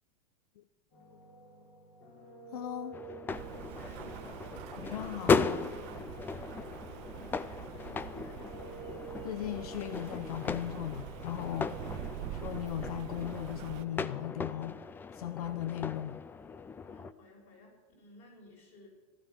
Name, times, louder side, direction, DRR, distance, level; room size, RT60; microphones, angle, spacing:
sound 1, 0.9-7.6 8.0-10.2, right 3 dB, 50° left, 6.0 m, -51 dB
voice 1, 2.5-3.0 4.8-5.7 9.2-11.7 12.3-14.8 15.1-16.2, left 12 dB, 80° left, 11 dB, 0.8 m, -38 dB
sound 2, 2.9-17.1, left 5 dB, 10° left, 0.3 m, -37 dB
Rain, 3.3-13.9, right 16 dB, 50° right, 0.5 m, -45 dB
voice 2, 3.7-4.5 7.1-8.6 11.7-12.4 16.9-18.9, left 1 dB, 35° left, -1 dB, 6.0 m, -56 dB
14.5 x 12.0 x 6.0 m, 1.3 s
supercardioid pair, 140°, 19 cm